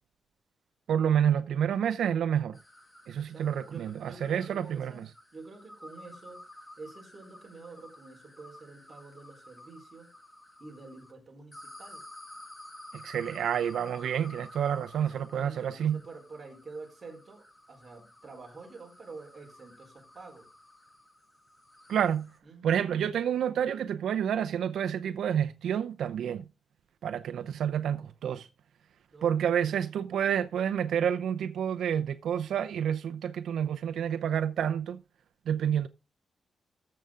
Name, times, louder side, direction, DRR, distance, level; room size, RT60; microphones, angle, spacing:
voice 1, 0.9-2.6 3.1-5.1 12.9-16.0 21.9-22.3 22.6-26.5 27.0-28.5 29.2-35.0 35.5-35.9, right 9 dB, 85° right, 0.6 m, -29 dB
sound 1, 2.5-11.1 11.5-22.4, left 1 dB, 15° left, 2.3 m, -52 dB
voice 2, 3.2-5.0 5.3-6.4 6.8-10.1 10.6-12.1 14.9-20.5 22.4-22.9 29.1-29.8, right 3 dB, 30° right, 4.2 m, -48 dB
14.0 x 6.9 x 3.7 m
wide cardioid pair, 140°, 0 cm